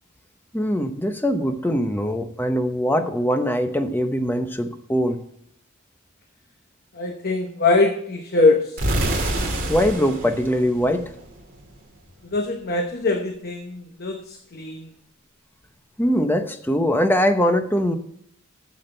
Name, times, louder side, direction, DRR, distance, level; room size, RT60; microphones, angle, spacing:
voice 1, 0.5-5.2 9.7-11.0 16.0-18.0, equal, 10° left, 7 dB, 0.8 m, -22 dB
voice 2, 6.9-8.9 12.2-14.9, left 3 dB, 45° left, 4 dB, 0.9 m, -22 dB
sound 1, 8.8-11.6, right 1 dB, 40° right, 2.4 m, -27 dB
11.5 x 7.3 x 4.5 m, 0.69 s
head